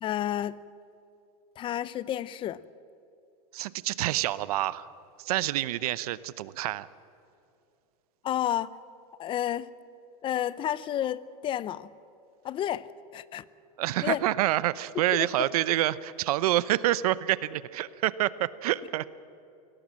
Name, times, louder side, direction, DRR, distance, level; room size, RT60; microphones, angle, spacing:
voice 1, 0.0-0.6 1.6-2.6 8.2-8.7 9.2-9.7 10.2-11.9 12.4-12.9 13.1-13.4 14.0-14.2 15.4-15.5, left 11 dB, 25° left, 0.6 m, -30 dB
voice 2, 3.5-4.9 5.2-6.9 13.8-19.1, right 15 dB, 75° right, 0.8 m, -27 dB
24.5 x 17.5 x 7.5 m
supercardioid pair, 140°, 19 cm